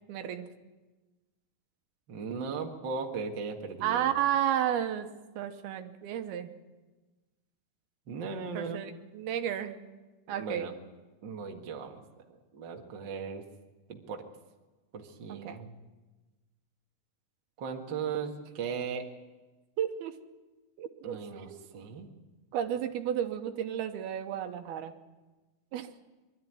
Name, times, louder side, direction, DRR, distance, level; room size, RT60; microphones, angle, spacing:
voice 1, 0.1-0.5 3.8-5.1 5.4-6.5 8.5-9.8 10.3-10.7 15.3-15.6 19.8-20.1 20.8-21.7 22.5-24.9 25.7-25.9, right 10 dB, 80° right, 7 dB, 2.9 m, -32 dB
voice 2, 2.1-4.2 8.1-8.8 10.3-10.7 11.2-13.4 13.9-14.2 14.9-15.8 17.6-19.0 21.0-22.1, right 5 dB, 45° right, 2 dB, 1.5 m, -37 dB
24.0 x 12.5 x 9.5 m, 1.2 s
omnidirectional pair, 4.6 m